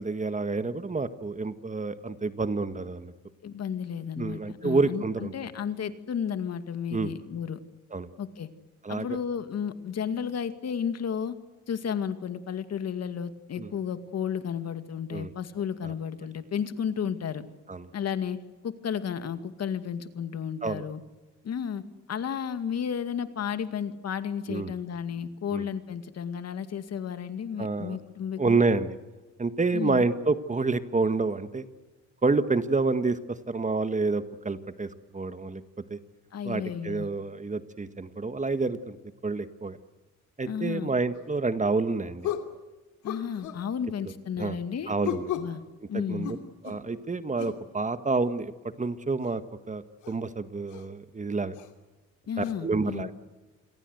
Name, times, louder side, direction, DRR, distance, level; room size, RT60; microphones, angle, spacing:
voice 1, 0.0-3.1 4.2-5.3 6.9-7.1 7.9-8.1 8.8-9.2 13.6-13.7 15.1-15.3 15.8-15.9 17.7-17.9 20.6-20.8 24.5-24.7 25.5-25.6 27.6-28.0 28.4-28.9 29.4-31.6 32.2-33.2 33.5-35.6 35.9-36.0 36.4-39.0 39.2-39.8 40.4-42.3 44.0-44.6 44.9-45.3 46.1-46.4 46.6-48.5 48.8-51.6 52.4-53.1, right 3 dB, 25° right, 11 dB, 1.6 m, -28 dB
voice 2, 3.4-7.6 8.2-8.5 8.9-11.3 11.7-17.4 17.9-18.4 18.6-21.0 21.4-21.8 22.1-28.6 29.7-30.0 36.3-37.1 40.5-40.9 43.0-44.9 45.4-45.6 45.9-46.3 52.3-53.1, left 7 dB, 55° left, 10 dB, 2.2 m, -33 dB
sound 1, 41.1-41.3 42.2-42.5 43.0-43.6 45.0-45.6 46.2-46.9 47.4-47.6 49.2-49.3 50.0-50.2 50.7-50.8 51.5-51.7 52.4-52.5, left 10 dB, 90° left, 2.8 m, -34 dB
28.5 x 22.0 x 8.0 m, 1.2 s
cardioid pair, 90°, 30 cm